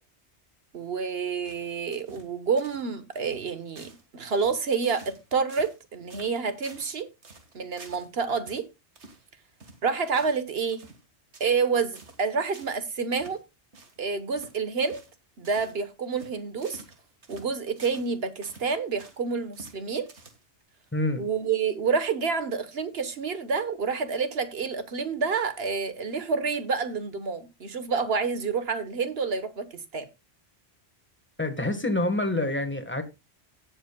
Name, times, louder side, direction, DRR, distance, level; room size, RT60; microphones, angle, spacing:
voice 1, 0.7-7.1 7.5-8.7 9.8-10.8 11.4-13.4 14.0-15.0 15.4-16.8 17.3-20.1 21.1-30.1, right 5 dB, 65° right, 1.4 m, -28 dB
sound 1, 1.5-2.3 2.6-2.9 3.1-3.5 3.8-4.0 4.3-5.2 5.5-5.8 6.1-6.9 7.2-8.1 8.5-8.6 9.0-9.2 9.6-10.4 10.7-11.0 11.3-11.7 11.9-12.2 12.5-12.8 13.1-13.4 13.7-14.0 14.3-14.6 14.8-15.1 15.4-15.8 16.1-18.1 18.4-19.2 19.5-19.8 20.1-20.6, right 3 dB, 80° right, 2.0 m, -50 dB
voice 2, 20.9-21.3 31.4-33.0, left 2 dB, 10° left, 1.4 m, -27 dB
17.0 x 7.7 x 2.3 m
omnidirectional pair, 1.1 m